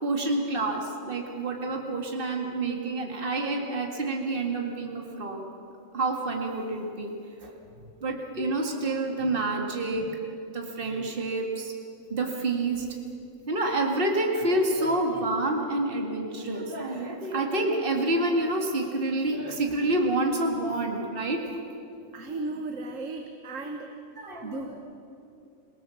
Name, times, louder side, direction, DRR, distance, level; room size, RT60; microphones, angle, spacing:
voice 1, 0.0-5.4 5.9-7.1 7.4-7.5 8.0-10.1 10.5-11.7 12.1-12.9 13.5-21.4 24.2-24.6, right 2 dB, 40° right, 1 dB, 2.3 m, -28 dB
voice 2, 22.1-23.9 24.4-24.7, right 2 dB, 70° right, 5 dB, 1.6 m, -35 dB
28.0 x 18.0 x 7.2 m, 2.7 s
omnidirectional pair, 1.4 m